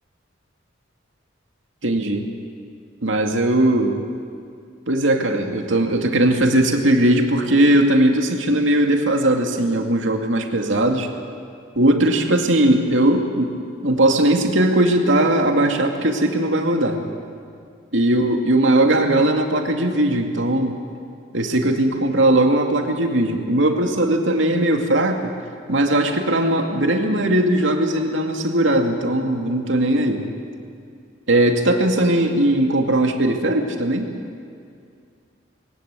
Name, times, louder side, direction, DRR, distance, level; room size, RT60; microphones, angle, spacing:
voice 1, 1.8-2.3 3.0-4.0 4.9-11.1 11.8-13.5 13.8-17.0 17.9-20.7 21.3-25.3 25.7-30.2 31.3-34.1, right 1 dB, 75° right, 3 dB, 2.3 m, -19 dB
21.5 x 19.0 x 8.2 m, 2.3 s
head